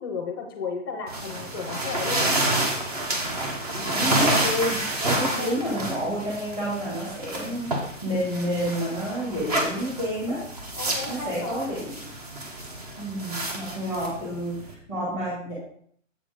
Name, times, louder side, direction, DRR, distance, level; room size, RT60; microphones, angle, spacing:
voice 1, 0.0-2.5 5.1-5.6 10.8-11.6, left 4 dB, 20° left, 3 dB, 0.6 m, -33 dB
sound 1, 1.1-14.7, right 1 dB, 30° right, 0.9 m, -29 dB
voice 2, 3.7-10.4 11.1-11.9 13.0-15.5, equal, 15° right, -8 dB, 1.6 m, -29 dB
7.6 x 4.0 x 4.8 m, 0.63 s
hypercardioid pair, 180°, 38 cm